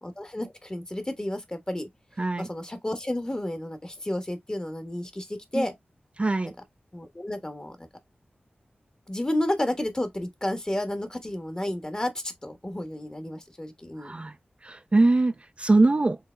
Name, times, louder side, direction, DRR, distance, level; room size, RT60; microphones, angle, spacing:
voice 1, 0.0-1.9 2.4-5.7 6.5-6.6 6.9-7.9 9.1-14.1, left 1 dB, 20° left, 1.2 m, -31 dB
voice 2, 6.2-6.5 14.0-14.3 14.6-16.2, right 2 dB, 35° right, 0.4 m, -22 dB
4.8 x 3.5 x 2.2 m
wide cardioid pair, 60°, 4 cm